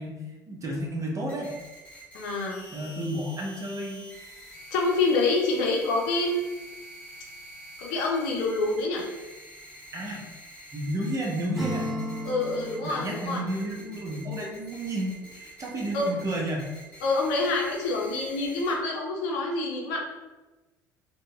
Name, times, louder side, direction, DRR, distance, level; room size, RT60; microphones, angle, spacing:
voice 1, 0.0-1.6 2.7-4.1 9.9-10.3 10.7-11.9 12.8-16.7, right 1 dB, 35° right, 0 dB, 0.8 m, -32 dB
sound 1, 1.3-18.7, right 1 dB, 15° left, 1.4 m, -47 dB
voice 2, 2.1-2.6 4.7-6.5 7.8-9.0 12.3-13.4 15.9-16.1 17.0-20.0, left 3 dB, 75° left, -1 dB, 0.6 m, -26 dB
Acoustic guitar / Strum, 11.5-14.6, right 1 dB, 5° right, 1.3 m, -35 dB
3.8 x 2.2 x 2.3 m, 1.1 s
hypercardioid pair, 65°, 9 cm